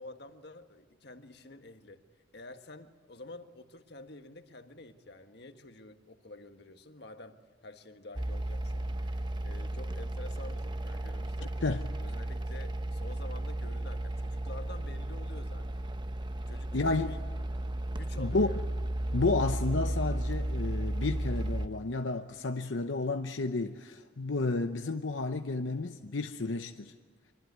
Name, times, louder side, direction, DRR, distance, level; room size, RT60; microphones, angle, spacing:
voice 1, 0.0-2.0 2.3-7.4 7.6-11.6 12.0-15.9 16.5-17.2 18.0-18.6, left 2 dB, 60° left, 1.6 m, -49 dB
sound 1, 8.1-21.7, right 1 dB, 25° right, 0.8 m, -34 dB
voice 2, 16.7-17.2 18.2-18.5 19.1-26.9, left 3 dB, 85° left, 0.9 m, -31 dB
24.0 x 24.0 x 9.5 m
head